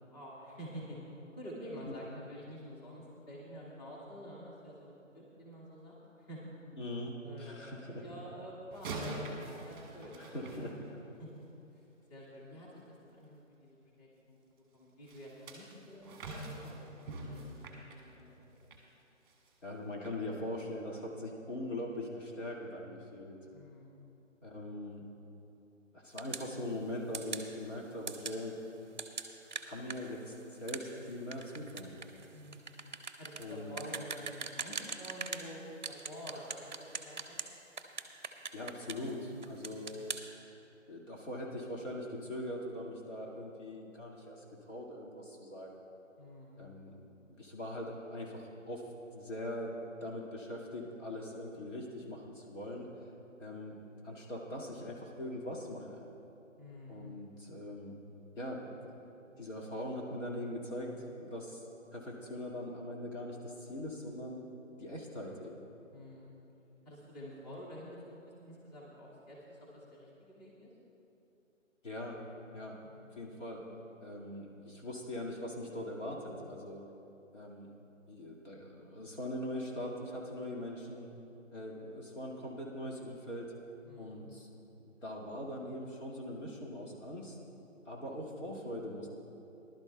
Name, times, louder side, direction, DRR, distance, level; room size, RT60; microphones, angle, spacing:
voice 1, 0.1-6.4 7.2-10.9 11.2-11.4 11.7-11.8 12.1-14.4 14.7-16.9 17.3-18.4 23.5-24.1 32.3-32.7 33.2-37.4 39.6-40.0 46.2-46.7 56.6-57.2 65.9-66.4 66.8-70.7 72.8-73.1 83.8-84.2, equal, 30° left, -5 dB, 2.2 m, -49 dB
voice 2, 6.8-8.2 10.2-10.9 19.6-23.4 24.4-25.1 25.9-28.6 29.7-32.0 33.4-33.7 38.5-40.0 40.9-45.8 46.6-46.9 47.3-48.9 49.1-49.7 50.0-52.9 53.4-56.0 56.9-58.0 58.4-59.0 59.4-61.6 61.9-64.4 64.8-65.6 71.8-72.2 72.5-72.8 73.1-73.7 74.0-76.8 77.3-77.7 78.1-81.1 81.5-83.5 84.0-84.5 84.8-87.4 87.9-89.1, left 1 dB, 70° left, -3 dB, 2.2 m, -41 dB
sound 1, 8.7-11.3 15.1-18.9 19.3-19.5 20.0-20.2, right 2 dB, 15° right, 1.2 m, -44 dB
sound 2, 26.2-26.5 27.1-27.5 28.1-28.4 29.0-35.5 35.8-37.5 37.8-39.1 39.4-40.2, right 5 dB, 35° right, 0.6 m, -41 dB
19.5 x 11.5 x 2.4 m, 2.9 s
figure-of-eight pair, 150°, 39 cm